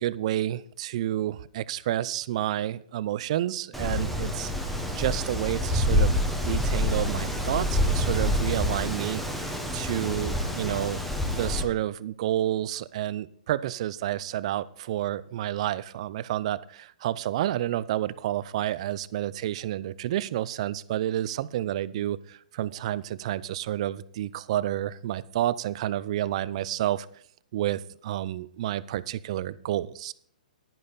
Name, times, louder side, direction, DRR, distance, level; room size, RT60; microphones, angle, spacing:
voice 1, 0.0-4.5 4.9-6.2 6.4-27.1 27.5-30.1, right 13 dB, 50° right, 18 dB, 0.5 m, -30 dB
Wind, 3.7-11.6, left 1 dB, ahead, 1.2 m, -27 dB
11.0 x 9.9 x 4.0 m, 0.62 s
hypercardioid pair, 130°, 4 cm